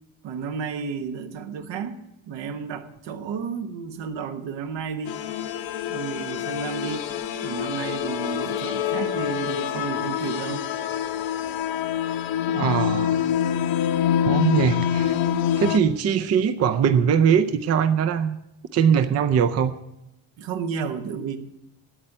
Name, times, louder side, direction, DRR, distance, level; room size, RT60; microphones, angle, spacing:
voice 1, 0.2-2.0 2.3-5.2 5.9-7.1 7.4-10.7 20.4-21.4, right 6 dB, 70° right, 7 dB, 1.3 m, -32 dB
sound 1, 5.1-15.8, left 9 dB, 80° left, 1.3 m, -26 dB
voice 2, 12.5-13.3 14.2-15.1 15.6-18.4 18.7-19.7, right 7 dB, 35° right, 10 dB, 0.5 m, -21 dB
9.0 x 8.7 x 9.7 m, 0.86 s
cardioid pair, 140°, 46 cm